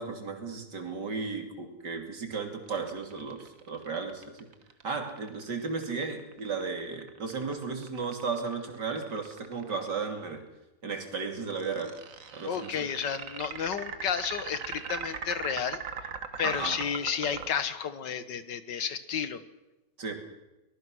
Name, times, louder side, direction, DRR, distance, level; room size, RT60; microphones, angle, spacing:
voice 1, 0.0-4.5 4.8-10.4 10.8-11.9 12.3-12.9 16.4-16.8 20.0-20.2, right 4 dB, 80° right, 4 dB, 3.4 m, -35 dB
sound 1, 2.7-9.9 11.5-17.5, right 6 dB, 50° right, 1.6 m, -40 dB
voice 2, 12.5-15.8 16.4-19.4, left 7 dB, 90° left, 12 dB, 1.9 m, -32 dB
23.5 x 19.5 x 6.3 m, 0.98 s
omnidirectional pair, 1.8 m